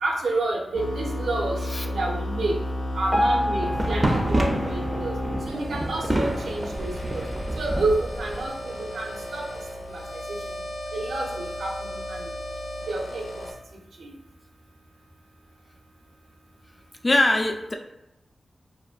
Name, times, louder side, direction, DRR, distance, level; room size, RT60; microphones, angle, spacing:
voice 1, 0.0-2.6 2.9-5.2 5.4-7.3 7.5-9.5 9.9-10.4 10.9-12.3 12.9-13.4 14.0-14.2, right 2 dB, 85° right, -1 dB, 0.5 m, -29 dB
sound 1, 0.7-13.5, equal, 90° left, 0.5 m, -33 dB
Piano, 3.1-6.2 6.7-6.9 7.2-7.3 8.0-8.1 8.7-8.8, left 1 dB, 20° left, 0.8 m, -29 dB
sound 2, 3.5-8.5, right 1 dB, 30° right, 0.4 m, -28 dB
voice 2, 17.0-17.8, left 1 dB, 35° left, 4 dB, 0.4 m, -22 dB
2.5 x 2.1 x 2.4 m, 0.92 s
cardioid pair, 45°, 0 cm